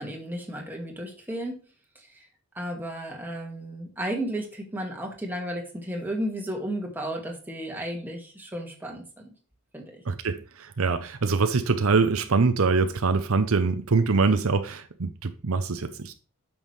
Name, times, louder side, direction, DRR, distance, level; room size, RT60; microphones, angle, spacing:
voice 1, 0.0-1.6 1.9-2.3 2.5-9.3 9.7-10.0, right 1 dB, 10° right, 1.7 m, -33 dB
voice 2, 10.1-16.1, right 4 dB, 75° right, 0.7 m, -24 dB
8.9 x 6.2 x 3.2 m
head